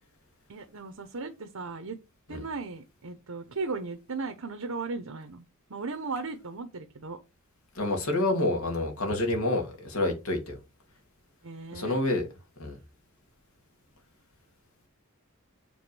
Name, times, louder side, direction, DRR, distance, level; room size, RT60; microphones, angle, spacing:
voice 1, 0.5-2.0 2.3-5.4 5.7-7.2 11.4-12.0, right 4 dB, 85° right, 0.9 m, -36 dB
voice 2, 7.7-10.6 11.7-12.2 12.6-12.8, left 2 dB, 90° left, 2.4 m, -28 dB
7.1 x 3.8 x 6.1 m
head